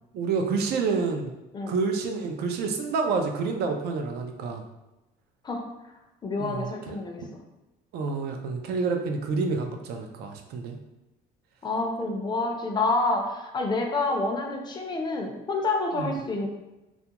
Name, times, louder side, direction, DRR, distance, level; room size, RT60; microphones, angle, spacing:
voice 1, 0.1-1.3 1.7-4.6 6.3-7.3 7.9-10.8 15.9-16.1, right 4 dB, 70° right, 4 dB, 0.4 m, -28 dB
voice 2, 6.2-7.2 11.6-16.5, left 3 dB, 25° left, 3 dB, 0.4 m, -28 dB
2.4 x 2.2 x 2.8 m, 0.99 s
cardioid pair, 110°, 17 cm